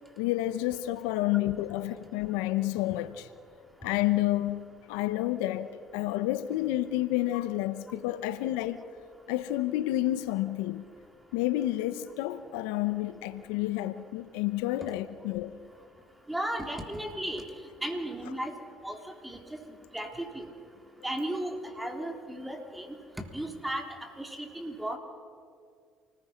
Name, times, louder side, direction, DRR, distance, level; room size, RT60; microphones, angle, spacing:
voice 1, 0.2-3.3 3.8-8.8 9.3-10.8 11.3-15.6, left 15 dB, 85° left, 0.8 m, -30 dB
voice 2, 16.3-17.4 17.8-18.5 18.8-19.6 19.9-20.5 21.0-25.0, right 1 dB, 10° right, 3.6 m, -35 dB
28.0 x 20.0 x 5.8 m
supercardioid pair, 75°, 0 cm